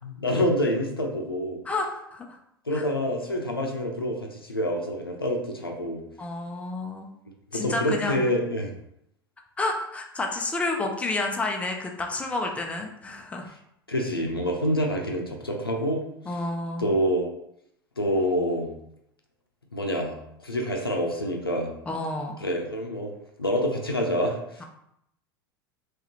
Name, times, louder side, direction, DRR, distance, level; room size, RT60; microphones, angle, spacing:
voice 1, 0.0-1.6 2.7-6.0 7.5-8.7 13.9-16.0 16.8-17.3 18.0-18.7 19.7-21.7 22.4-23.1 23.4-24.6, equal, 85° left, 1 dB, 0.6 m, -27 dB
voice 2, 1.6-2.4 2.7-2.8 6.2-7.1 7.5-8.2 9.6-13.5 16.3-16.9 21.9-22.4 24.6-24.7, left 2 dB, 10° left, 2 dB, 0.6 m, -30 dB
3.5 x 3.1 x 2.9 m, 0.77 s
figure-of-eight pair, 80°, 12 cm